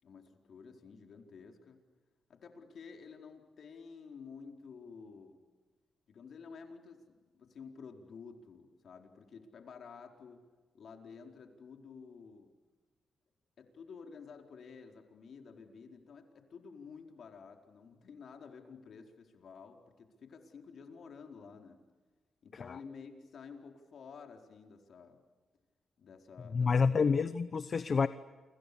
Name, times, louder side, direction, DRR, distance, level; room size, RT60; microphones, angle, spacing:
voice 1, 0.0-1.8 2.3-5.4 6.1-10.4 10.7-12.5 13.6-21.8 22.4-25.2 26.0-27.1, left 5 dB, 65° left, 3 dB, 4.5 m, -51 dB
voice 2, 26.5-28.1, left 5 dB, 50° left, 13 dB, 1.0 m, -28 dB
29.5 x 26.5 x 7.1 m, 1.3 s
cardioid pair, 70°, 0 cm